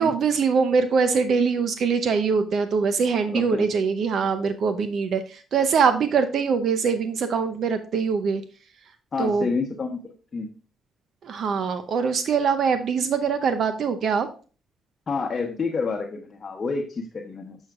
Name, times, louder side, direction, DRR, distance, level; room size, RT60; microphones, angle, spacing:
voice 1, 0.0-8.4 9.2-9.5 11.2-14.3, right 5 dB, 60° right, 9 dB, 0.6 m, -23 dB
voice 2, 3.3-3.7 9.1-10.0 10.3-10.5 15.1-17.6, left 4 dB, 40° left, 2 dB, 1.0 m, -28 dB
7.4 x 6.3 x 2.4 m, 0.37 s
cardioid pair, 90°, 0 cm